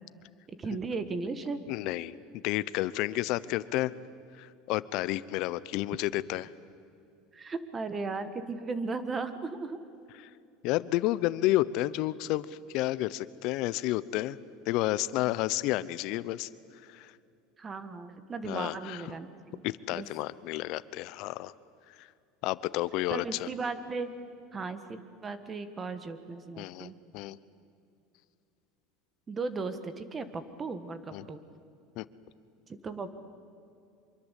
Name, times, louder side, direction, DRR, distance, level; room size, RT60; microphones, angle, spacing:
voice 1, 0.5-1.6 7.3-9.8 17.6-19.6 19.9-20.1 23.1-24.1 24.5-26.9 29.3-31.4 32.7-33.1, right 4 dB, 20° right, 11 dB, 1.6 m, -36 dB
voice 2, 1.7-3.9 4.4-6.5 10.6-14.4 14.7-16.5 16.9-17.1 18.5-19.0 19.6-21.5 22.0-22.1 22.4-23.5 26.6-27.4 31.1-31.3 32.0-32.1, left 16 dB, 55° left, 18 dB, 0.8 m, -31 dB
25.5 x 23.5 x 8.4 m, 2.6 s
supercardioid pair, 145°, 0 cm